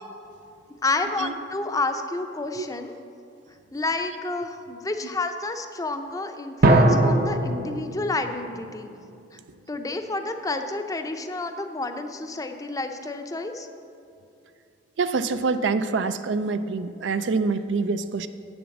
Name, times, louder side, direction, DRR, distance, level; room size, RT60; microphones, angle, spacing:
voice 1, 0.8-3.0 3.7-8.9 9.7-13.7, left 3 dB, 20° left, 7 dB, 0.5 m, -30 dB
sound 1, 6.6-9.4, right 2 dB, 55° right, 0.8 m, -22 dB
voice 2, 15.0-18.3, right 4 dB, 75° right, 11 dB, 0.4 m, -25 dB
8.7 x 7.1 x 7.1 m, 2.5 s
head